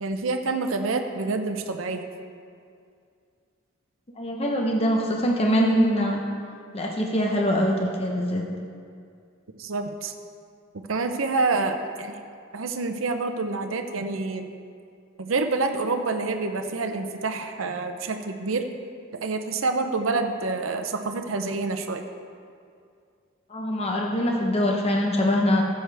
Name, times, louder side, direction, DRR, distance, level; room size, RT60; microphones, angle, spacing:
voice 1, 0.0-2.0 9.6-10.1 10.9-12.2 12.5-14.5 15.2-18.7 19.2-22.0, right 3 dB, 70° right, 6 dB, 0.7 m, -27 dB
voice 2, 4.2-6.2 6.7-8.4 23.5-25.6, equal, 30° left, 0 dB, 0.9 m, -23 dB
14.0 x 7.7 x 3.4 m, 2.3 s
head